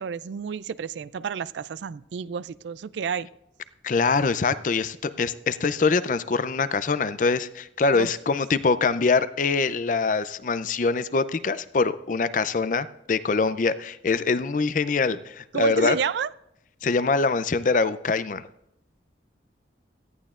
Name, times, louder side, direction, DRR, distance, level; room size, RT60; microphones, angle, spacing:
voice 1, 0.0-3.3 8.0-8.1 15.5-16.3, right 6 dB, 80° right, 17 dB, 0.4 m, -30 dB
voice 2, 3.8-16.0 16.8-18.4, left 4 dB, 45° left, 14 dB, 0.4 m, -24 dB
17.5 x 13.5 x 2.5 m, 0.80 s
head